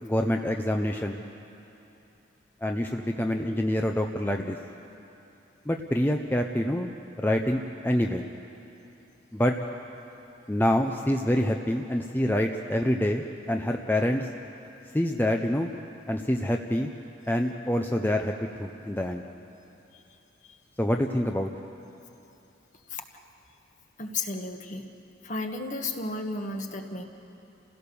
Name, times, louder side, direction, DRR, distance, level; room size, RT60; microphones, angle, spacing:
voice 1, 0.0-1.2 2.6-4.6 5.7-6.9 7.2-8.2 9.3-9.5 10.5-14.3 14.9-15.7 16.1-16.9 17.3-19.2 20.8-21.5, left 1 dB, 10° left, 3 dB, 0.6 m, -26 dB
voice 2, 24.0-24.8 25.2-27.0, left 3 dB, 40° left, 4 dB, 1.5 m, -33 dB
29.5 x 16.5 x 7.0 m, 2.9 s
head